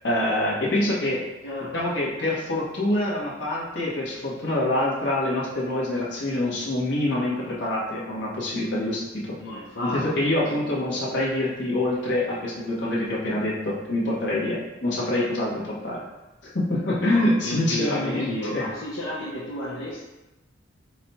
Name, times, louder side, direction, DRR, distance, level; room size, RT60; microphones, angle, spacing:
voice 1, 0.0-1.2 1.7-9.4 9.8-16.0 16.4-18.6, left 1 dB, 65° left, -6 dB, 1.3 m, -25 dB
voice 2, 1.4-1.7 9.4-10.2 17.1-20.0, left 1 dB, 80° left, -7 dB, 0.8 m, -32 dB
4.8 x 2.3 x 4.2 m, 1.0 s
head